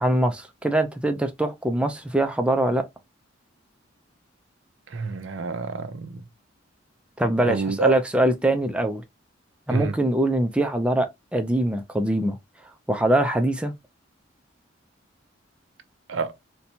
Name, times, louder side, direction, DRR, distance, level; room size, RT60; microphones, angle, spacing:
voice 1, 0.0-2.8 7.2-9.0 9.7-12.4 12.9-13.7, right 1 dB, 5° right, 0.4 m, -23 dB
voice 2, 4.9-6.2 7.4-7.9 9.7-9.9 16.1-16.3, right 4 dB, 80° right, 0.5 m, -27 dB
4.2 x 2.2 x 2.7 m
head